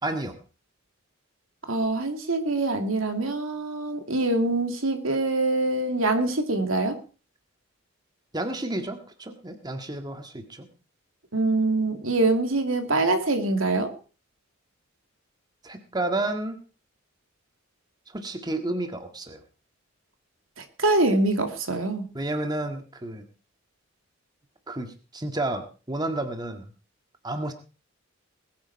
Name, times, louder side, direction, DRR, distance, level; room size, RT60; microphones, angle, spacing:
voice 1, 0.0-0.4 8.3-10.7 15.6-16.6 18.1-19.4 22.1-23.2 24.7-26.7 27.2-27.5, right 2 dB, 20° right, 6 dB, 1.8 m, -31 dB
voice 2, 1.7-7.0 11.3-13.9 20.6-22.0, right 2 dB, 85° right, 6 dB, 2.6 m, -24 dB
20.5 x 9.5 x 4.7 m, 0.36 s
head